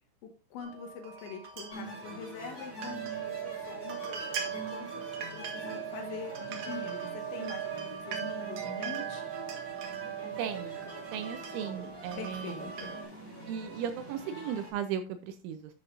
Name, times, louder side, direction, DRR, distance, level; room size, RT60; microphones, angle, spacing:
voice 1, 0.2-9.2 12.2-12.9, left 5 dB, 70° left, 5 dB, 3.1 m, -44 dB
Dull metal windchimes, 0.6-13.0, right 8 dB, 60° right, 3.0 m, -39 dB
sound 1, 1.7-14.7, right 1 dB, 10° left, 4.0 m, -45 dB
voice 2, 10.4-10.8 11.1-12.6 13.5-15.7, right 8 dB, 80° right, 9 dB, 2.9 m, -36 dB
11.5 x 8.1 x 2.6 m, 0.30 s
omnidirectional pair, 6.0 m